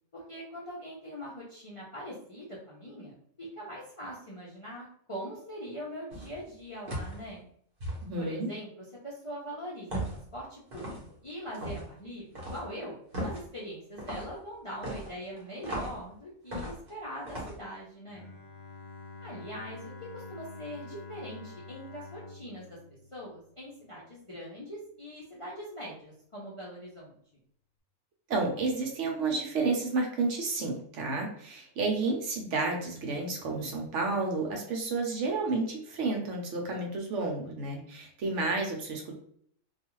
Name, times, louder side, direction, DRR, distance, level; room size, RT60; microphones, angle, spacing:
voice 1, 0.1-7.4 8.2-18.3 19.2-22.8 23.1-27.1, equal, 45° left, -6 dB, 0.4 m, -42 dB
sound 1, 6.1-6.4 6.9-7.2 7.8-8.0 9.9-10.2 10.7-11.0 11.5-11.9 12.4-12.6 13.1-13.4 14.0-14.3 14.8-16.0 16.5-16.9 17.3-17.6, right 1 dB, 45° right, 0.9 m, -36 dB
voice 2, 8.0-8.5 28.3-39.2, right 3 dB, 70° right, 2 dB, 0.9 m, -31 dB
Bowed string instrument, 18.1-24.0, left 3 dB, 70° left, 0.9 m, -47 dB
2.4 x 2.4 x 2.9 m, 0.64 s
omnidirectional pair, 1.4 m